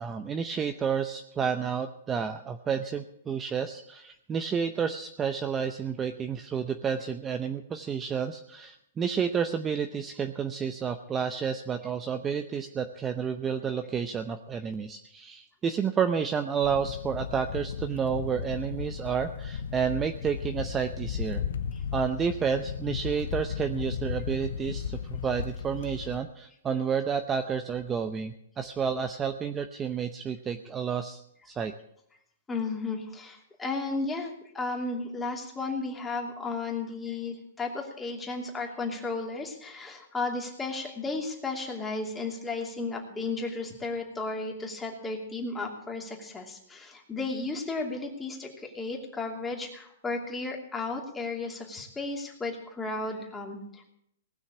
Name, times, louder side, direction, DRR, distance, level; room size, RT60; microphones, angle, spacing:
voice 1, 0.0-21.4 21.9-31.7, right 7 dB, 15° right, 7 dB, 0.7 m, -30 dB
sound 1, 16.6-26.2, left 7 dB, 75° left, 0.9 m, -35 dB
voice 2, 32.5-53.9, left 3 dB, 10° left, 0 dB, 2.7 m, -34 dB
19.0 x 6.4 x 8.5 m, 0.74 s
hypercardioid pair, 140°, 0 cm